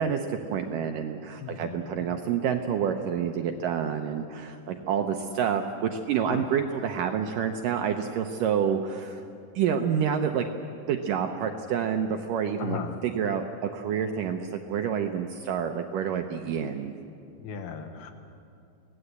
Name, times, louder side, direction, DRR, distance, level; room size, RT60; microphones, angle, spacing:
voice 1, 0.0-9.2 9.6-10.5 10.9-17.0, right 7 dB, 75° right, 5 dB, 2.0 m, -28 dB
voice 2, 1.4-2.1 6.3-6.5 12.6-13.0 17.4-18.1, left 6 dB, 75° left, 6 dB, 3.2 m, -37 dB
26.5 x 18.0 x 8.1 m, 2.5 s
omnidirectional pair, 4.7 m